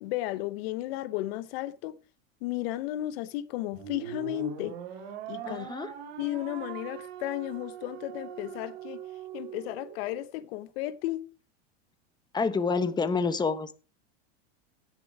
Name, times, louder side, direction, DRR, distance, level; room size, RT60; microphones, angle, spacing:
voice 1, 0.0-1.9 2.4-4.8 5.3-5.7 6.2-9.0 9.3-11.2, left 15 dB, 65° left, 1.0 m, -34 dB
sound 1, 3.7-10.2, right 10 dB, 70° right, 2.8 m, -42 dB
voice 2, 5.4-5.9 12.3-13.7, left 4 dB, 15° left, 1.2 m, -28 dB
17.5 x 7.2 x 4.8 m
supercardioid pair, 120°, 33 cm